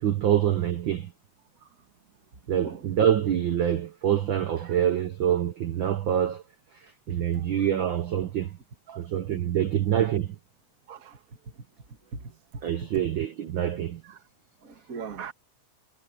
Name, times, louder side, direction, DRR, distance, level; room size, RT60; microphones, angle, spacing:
voice 1, 0.0-1.1 2.5-6.4 6.7-8.6 9.0-10.3 12.6-14.0, right 10 dB, 90° right, 1.0 m, -26 dB
voice 2, 14.6-15.3, right 5 dB, 30° right, 2.0 m, -39 dB
omnidirectional pair, 3.5 m